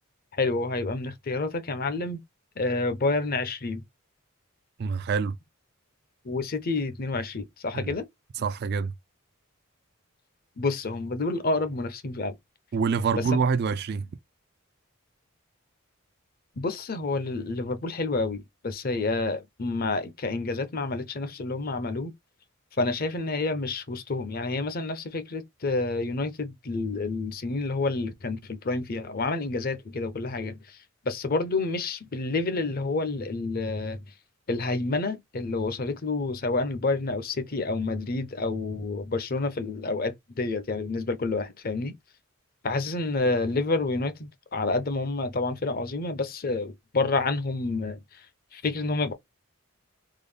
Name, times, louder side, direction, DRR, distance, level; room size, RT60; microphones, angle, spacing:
voice 1, 0.4-2.2 2.6-3.8 6.2-8.1 10.6-12.4 13.1-13.4 16.6-22.1 22.8-30.8 31.0-34.0 34.5-41.9 42.6-48.2 48.5-49.1, left 3 dB, 45° left, 0.6 m, -29 dB
voice 2, 4.8-5.4 7.7-7.9 8.4-8.9 12.7-14.1, right 5 dB, 50° right, 0.3 m, -26 dB
3.8 x 2.1 x 3.2 m
head